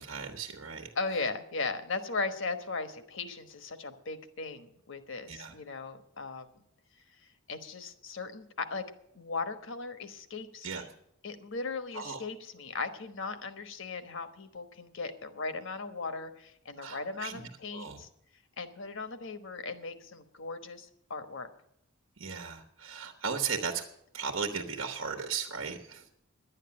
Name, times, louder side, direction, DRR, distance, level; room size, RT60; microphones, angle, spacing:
voice 1, 0.0-0.9 5.3-5.5 10.6-10.8 11.9-12.2 16.8-18.0 22.2-23.8 24.1-26.1, right 6 dB, 65° right, 4 dB, 1.3 m, -36 dB
voice 2, 0.9-6.5 7.5-8.8 9.1-10.8 11.2-18.1 18.6-21.5, left 4 dB, 60° left, 9 dB, 1.2 m, -37 dB
11.5 x 9.2 x 8.6 m, 0.75 s
head